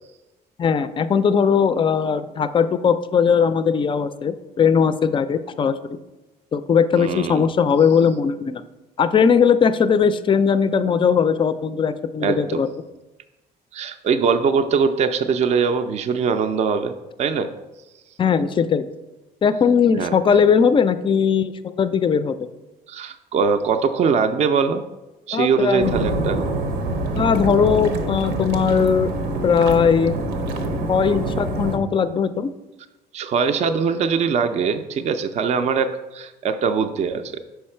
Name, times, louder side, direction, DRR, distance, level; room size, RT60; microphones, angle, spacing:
voice 1, 0.6-6.0 6.5-8.6 9.0-12.7 18.2-18.9 19.4-22.5 25.3-25.9 27.2-29.1 29.4-30.2 30.9-32.5, left 6 dB, 30° left, 13 dB, 0.3 m, -19 dB
voice 2, 6.9-7.5 12.2-12.6 13.7-17.5 20.0-20.2 22.9-24.8 25.3-26.4 33.1-37.4, right 5 dB, 40° right, 8 dB, 0.4 m, -22 dB
sound 1, 25.8-31.8, right 1 dB, 85° right, 0.8 m, -25 dB
5.7 x 4.6 x 4.3 m, 1.1 s
cardioid pair, 110°, 17 cm